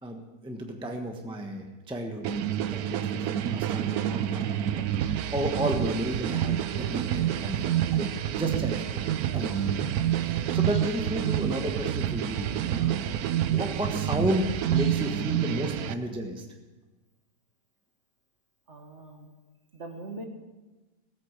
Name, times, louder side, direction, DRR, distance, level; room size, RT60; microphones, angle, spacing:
voice 1, 0.0-4.9 5.3-9.1 9.3-9.6 10.1-13.1 13.5-16.5, equal, 5° right, 2 dB, 1.0 m, -33 dB
sound 1, 2.2-15.9, right 11 dB, 70° right, 1.1 m, -28 dB
voice 2, 18.7-19.3 19.7-20.3, right 2 dB, 45° right, 3 dB, 1.9 m, -42 dB
17.0 x 8.7 x 6.6 m, 1.2 s
omnidirectional pair, 1.8 m